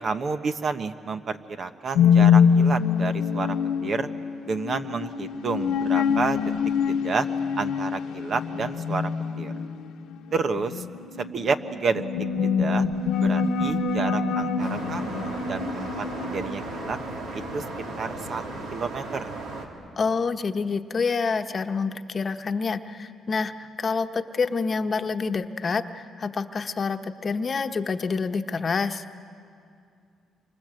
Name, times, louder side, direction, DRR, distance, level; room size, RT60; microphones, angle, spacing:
voice 1, 0.0-3.6 3.8-4.1 4.5-6.5 6.9-7.3 7.5-9.1 9.4-9.5 10.3-10.8 11.3-12.0 12.4-12.9 13.2-17.0 17.3-17.6 18.0-18.4 18.7-19.3, right 4 dB, 50° right, 9 dB, 1.1 m, -30 dB
sound 1, 2.0-18.6, left 6 dB, 90° left, 1.2 m, -25 dB
sound 2, 14.6-19.7, right 2 dB, 80° right, 3.2 m, -36 dB
voice 2, 20.0-29.0, left 4 dB, 40° left, 7 dB, 1.1 m, -27 dB
28.0 x 25.0 x 7.8 m, 2.4 s
cardioid pair, 90°, 0 cm